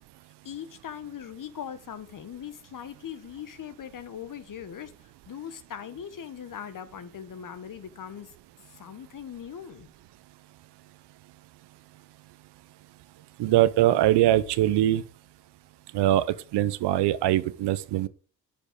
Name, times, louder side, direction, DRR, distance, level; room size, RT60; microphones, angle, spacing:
voice 1, 0.4-8.3 8.7-9.9, left 9 dB, 50° left, 1.3 m, -40 dB
voice 2, 13.4-15.0 15.9-16.2 16.5-18.1, right 14 dB, 70° right, 0.8 m, -22 dB
8.5 x 5.3 x 5.1 m
supercardioid pair, 60°, 42 cm